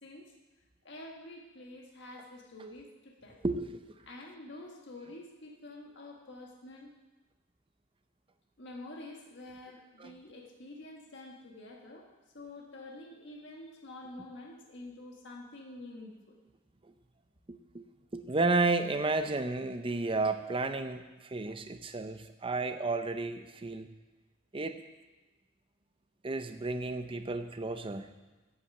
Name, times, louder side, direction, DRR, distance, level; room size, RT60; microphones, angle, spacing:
voice 1, 0.0-0.3 0.8-3.4 4.1-6.9 8.6-12.1 12.3-16.4, left 2 dB, 65° left, 0 dB, 1.6 m, -48 dB
voice 2, 3.4-3.9 10.0-10.1 17.5-17.8 18.1-23.9 24.5-24.8 26.2-28.1, right 3 dB, 25° right, 9 dB, 0.6 m, -32 dB
8.5 x 8.5 x 7.7 m, 1.2 s
head